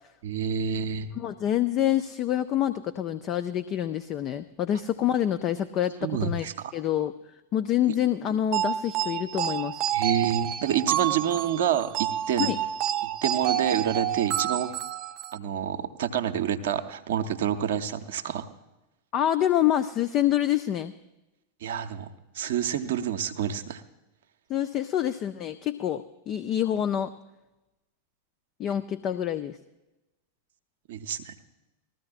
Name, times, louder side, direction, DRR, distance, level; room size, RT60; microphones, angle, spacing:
voice 1, 0.2-1.1 6.0-6.5 7.8-7.9 9.9-12.5 13.0-14.7 15.3-18.5 21.6-23.8 30.9-31.4, right 9 dB, 55° right, 7 dB, 0.7 m, -28 dB
voice 2, 1.1-6.5 6.7-7.1 7.5-9.8 12.4-12.6 19.1-20.9 24.5-27.1 28.6-29.6, left 11 dB, 35° left, 12 dB, 0.4 m, -26 dB
sound 1, 8.5-15.4, right 11 dB, 40° right, 0.3 m, -29 dB
19.5 x 14.0 x 2.4 m, 1.0 s
figure-of-eight pair, 90°, 0 cm